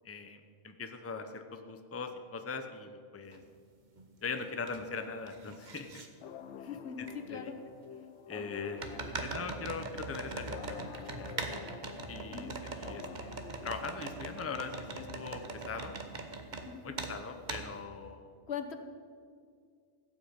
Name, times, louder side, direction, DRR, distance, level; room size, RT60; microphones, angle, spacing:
voice 1, 0.0-3.4 4.2-6.0 7.0-7.4 8.3-11.4 12.1-13.3 13.6-16.0 16.8-18.3, left 4 dB, 15° left, 7 dB, 0.6 m, -41 dB
sound 1, 3.3-3.4 4.0-4.8 5.0-6.1 7.1-7.2 8.8-16.7 17.0-17.1 17.5-17.7, right 3 dB, 45° right, 1.2 m, -41 dB
sound 2, 6.2-15.7, left 8 dB, 85° left, 1.0 m, -49 dB
voice 2, 6.6-7.6 12.3-12.5 16.6-16.9 18.5-18.8, left 7 dB, 70° left, 8 dB, 1.3 m, -41 dB
15.5 x 6.3 x 8.7 m, 2.1 s
omnidirectional pair, 1.1 m